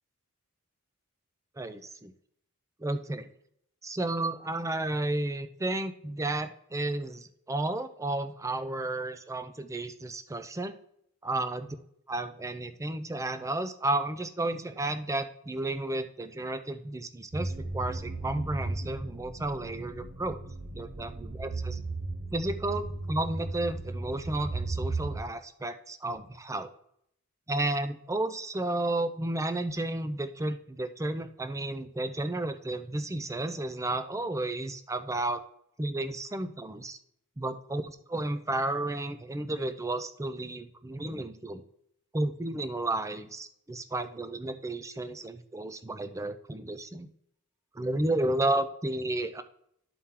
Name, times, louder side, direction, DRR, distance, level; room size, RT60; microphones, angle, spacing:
voice 1, 1.6-2.1 2.8-3.3 3.8-10.7 11.2-11.7 12.1-20.4 20.7-21.8 22.3-26.7 27.5-35.4 35.8-37.0 37.4-41.6 42.1-47.1 47.7-49.4, right 2 dB, 15° right, 10 dB, 0.5 m, -32 dB
sound 1, 17.3-25.2, right 2 dB, 90° right, 1.1 m, -36 dB
11.0 x 4.3 x 3.7 m, 0.71 s
head